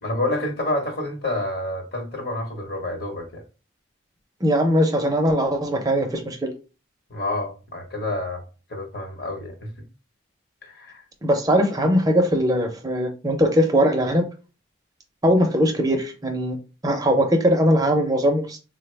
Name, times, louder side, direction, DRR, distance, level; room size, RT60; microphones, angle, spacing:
voice 1, 0.0-3.4 7.1-8.4 8.7-9.7 10.6-11.0, left 1 dB, 50° left, 0.9 m, -28 dB
voice 2, 4.4-6.5 11.2-14.2 15.2-16.6 16.8-18.6, equal, 20° right, 0.4 m, -20 dB
3.6 x 2.0 x 3.2 m
head